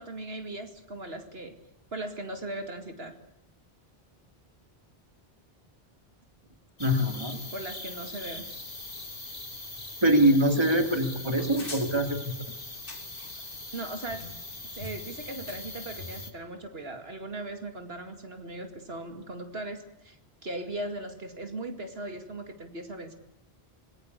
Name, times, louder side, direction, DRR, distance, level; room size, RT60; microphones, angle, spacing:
voice 1, 0.0-1.6 1.9-3.1 7.5-8.4 13.7-14.3 14.7-23.1, right 2 dB, 75° right, 6 dB, 2.6 m, -38 dB
sound 1, 6.8-16.3, left 2 dB, 60° left, 3.1 m, -41 dB
voice 2, 6.8-7.4 10.0-12.2, right 1 dB, 25° right, 6 dB, 2.8 m, -23 dB
27.0 x 21.0 x 8.2 m, 0.77 s
omnidirectional pair, 1.0 m